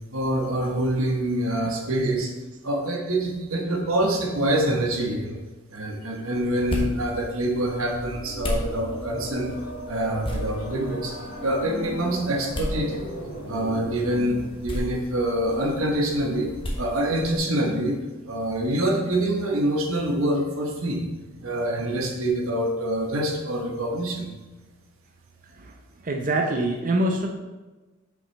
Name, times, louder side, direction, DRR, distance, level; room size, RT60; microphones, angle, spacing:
voice 1, 0.1-2.3 2.6-5.4 5.7-9.5 9.9-11.1 11.4-13.0 13.5-18.0 18.2-21.0 21.4-24.3, right 1 dB, 90° right, 1 dB, 1.2 m, -25 dB
sound 1, 6.2-17.4, equal, 25° left, 1.1 m, -35 dB
sound 2, 8.0-14.5, equal, 60° left, 1.2 m, -37 dB
voice 2, 26.0-27.3, right 1 dB, 40° right, 1 dB, 0.6 m, -25 dB
6.1 x 5.2 x 4.1 m, 1.2 s
head